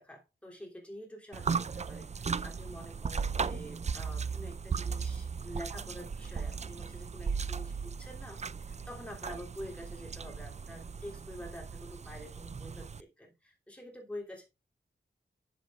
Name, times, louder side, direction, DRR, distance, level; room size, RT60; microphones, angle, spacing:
voice 1, 0.0-14.4, equal, 5° left, 3.3 m, -47 dB
sound 1, 1.3-13.0, right 5 dB, 40° right, 0.4 m, -37 dB
12.5 x 7.1 x 2.5 m
wide cardioid pair, 100°, 19 cm